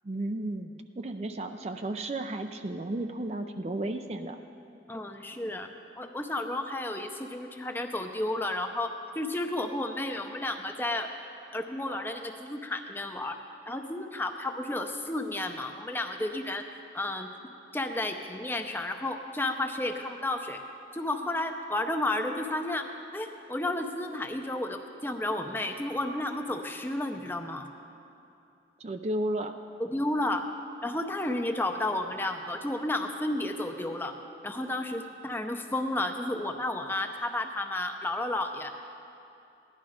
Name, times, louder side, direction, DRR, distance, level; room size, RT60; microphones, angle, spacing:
voice 1, 0.0-4.4 28.8-29.6, right 1 dB, 35° right, 7 dB, 0.4 m, -33 dB
voice 2, 4.9-5.7 6.0-11.1 11.5-13.4 13.7-16.6 16.9-17.3 17.7-20.6 20.9-27.7 29.8-30.5 30.8-34.1 34.4-38.7, left 1 dB, 10° left, 5 dB, 0.6 m, -32 dB
16.5 x 11.5 x 5.0 m, 2.6 s
head